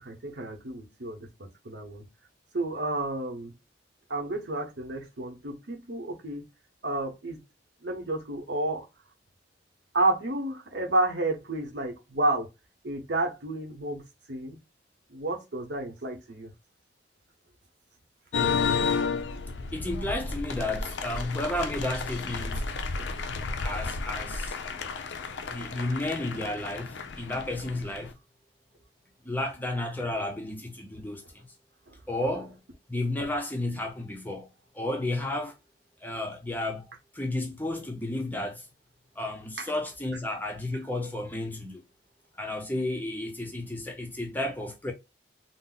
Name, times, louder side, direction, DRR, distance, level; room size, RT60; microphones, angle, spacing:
voice 1, 0.0-2.0 2.5-3.5 4.1-6.5 6.8-7.4 7.8-8.9 9.9-12.5 12.8-14.0 14.3-14.6 15.1-16.5 22.9-23.1 31.9-32.0 39.6-39.7, right 2 dB, 70° right, 0.9 m, -31 dB
sound 1, 18.3-28.1, left 5 dB, 80° left, 0.5 m, -32 dB
voice 2, 19.7-22.7 23.6-24.6 25.5-28.1 29.2-31.5 32.1-32.6 32.9-34.5 34.7-35.6 36.0-36.9 37.1-38.6 39.2-41.8 42.4-44.9, left 1 dB, 10° left, 0.5 m, -32 dB
2.6 x 2.0 x 3.8 m
head